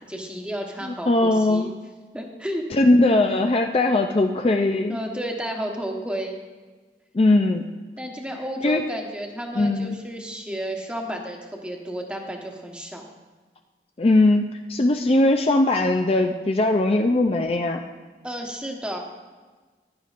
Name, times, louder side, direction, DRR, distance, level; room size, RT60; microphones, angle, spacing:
voice 1, 0.0-1.7 2.1-2.6 4.9-6.4 8.0-13.0 18.2-19.0, right 1 dB, 5° right, 1 dB, 1.1 m, -32 dB
voice 2, 1.1-1.7 2.7-5.0 7.1-7.6 8.6-8.8 9.6-10.0 14.0-17.8, left 2 dB, 35° left, 4 dB, 0.4 m, -20 dB
14.5 x 11.5 x 2.5 m, 1.3 s
head